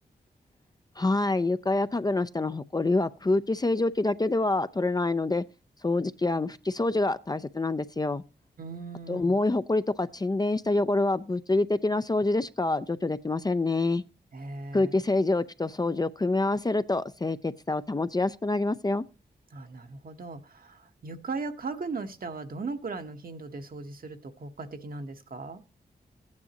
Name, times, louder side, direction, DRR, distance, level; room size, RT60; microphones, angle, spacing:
voice 1, 1.0-5.4 5.8-8.2 9.1-14.0 14.7-19.1, left 2 dB, 25° left, 0.5 m, -26 dB
voice 2, 8.6-9.4 14.3-15.0 19.5-25.6, right 3 dB, 55° right, 1.1 m, -38 dB
14.5 x 9.6 x 2.9 m
cardioid pair, 60°, 17 cm